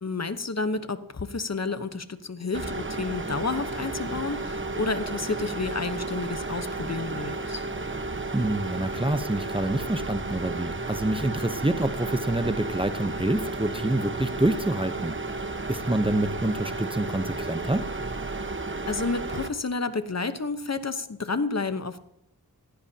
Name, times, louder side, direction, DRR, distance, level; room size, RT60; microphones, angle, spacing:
voice 1, 0.0-7.7 18.9-22.0, left 4 dB, 45° left, 10 dB, 1.0 m, -30 dB
sound 1, 2.5-19.5, right 3 dB, 35° right, 1.1 m, -33 dB
voice 2, 8.3-17.9, right 1 dB, 15° right, 10 dB, 0.8 m, -27 dB
18.0 x 15.5 x 2.9 m, 0.79 s
wide cardioid pair, 65°, 36 cm